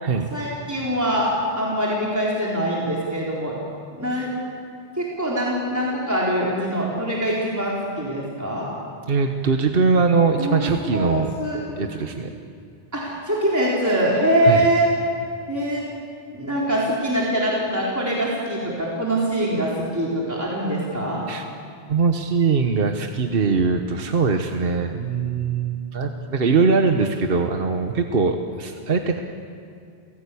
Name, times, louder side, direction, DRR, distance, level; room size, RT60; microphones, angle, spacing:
voice 1, 0.3-1.3 1.6-3.6 3.9-4.3 5.0-8.7 10.4-10.6 10.9-11.8 12.9-14.9 15.5-15.8 16.3-21.2, right 1 dB, 15° right, -5 dB, 4.0 m, -23 dB
voice 2, 9.1-11.3 11.8-12.3 14.4-14.7 21.3-21.4 21.9-29.2, right 4 dB, 65° right, 5 dB, 1.4 m, -21 dB
29.5 x 17.5 x 8.5 m, 2.4 s
omnidirectional pair, 1.1 m